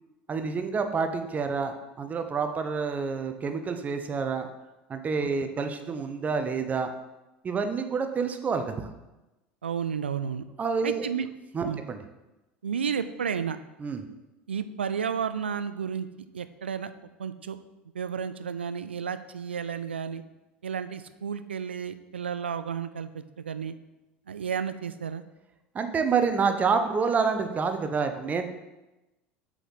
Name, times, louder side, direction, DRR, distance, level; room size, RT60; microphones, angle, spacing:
voice 1, 0.3-4.5 4.9-6.9 7.4-8.9 10.6-11.0 11.5-12.0 13.8-14.0 25.7-28.5, right 5 dB, 25° right, 7 dB, 0.7 m, -28 dB
voice 2, 9.6-10.5 10.8-11.3 11.6-11.8 12.6-13.6 14.5-16.1 16.3-16.9 17.2-17.6 17.9-20.2 20.6-23.8 24.3-25.2, right 7 dB, 80° right, 12 dB, 0.3 m, -32 dB
7.8 x 4.6 x 4.0 m, 1.0 s
figure-of-eight pair, 75°, 6 cm